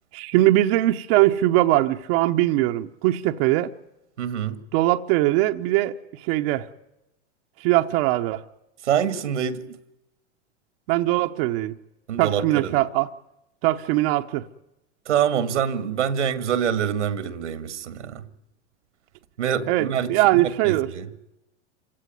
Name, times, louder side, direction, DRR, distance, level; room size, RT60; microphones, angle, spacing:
voice 1, 0.1-3.7 4.7-6.7 7.6-8.4 10.9-11.7 12.2-13.1 13.6-14.5 19.7-20.9, right 16 dB, 55° right, 1.0 m, -21 dB
voice 2, 4.2-4.6 8.8-9.8 12.1-12.8 15.1-18.3 19.4-21.1, right 8 dB, 90° right, 2.0 m, -26 dB
27.0 x 16.5 x 9.4 m
hypercardioid pair, 115°, 35 cm